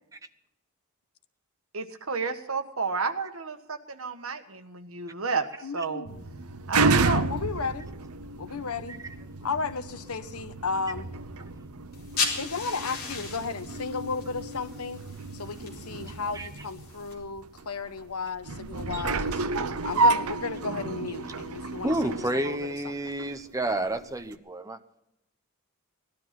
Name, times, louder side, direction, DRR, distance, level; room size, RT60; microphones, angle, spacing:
voice 1, 1.7-5.5 5.7-6.1 6.7-7.3, right 4 dB, 70° right, 8 dB, 1.5 m, -31 dB
voice 2, 5.6-6.5 6.8-7.9 8.4-9.0 9.4-11.1 12.4-15.0 15.3-19.4 19.8-23.1, left 4 dB, 90° left, 12 dB, 1.1 m, -34 dB
sound 1, 6.1-23.4 23.9-24.1, right 3 dB, 90° right, 0.9 m, -31 dB
sound 2, 11.9-17.1, left 4 dB, 45° left, 4.2 m, -36 dB
voice 3, 21.8-24.8, right 1 dB, 15° right, 8 dB, 1.0 m, -30 dB
18.5 x 12.0 x 6.0 m, 0.85 s
head